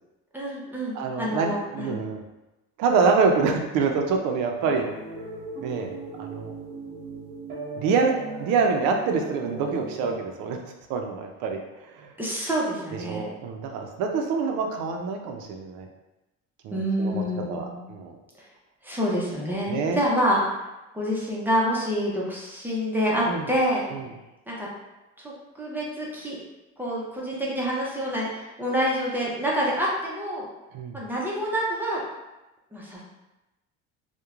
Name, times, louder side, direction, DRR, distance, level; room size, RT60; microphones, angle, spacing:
voice 1, 0.3-1.9 12.2-13.3 16.7-17.8 18.8-20.4 20.9-23.9 24.5-24.7 25.2-26.4 26.8-30.5 30.9-32.0 32.7-33.0, equal, 5° right, -5 dB, 0.4 m, -27 dB
voice 2, 0.9-2.2 2.8-4.9 5.6-5.9 6.2-6.5 7.8-10.6 10.9-12.1 13.1-15.9 16.6-17.2 17.5-18.1 19.7-20.0 23.3-23.5 23.9-24.1 30.7-31.0, right 5 dB, 80° right, 3 dB, 0.5 m, -26 dB
sound 1, 4.6-10.2, right 3 dB, 30° right, 0.8 m, -37 dB
3.0 x 2.1 x 2.3 m, 1.0 s
cardioid pair, 140°, 29 cm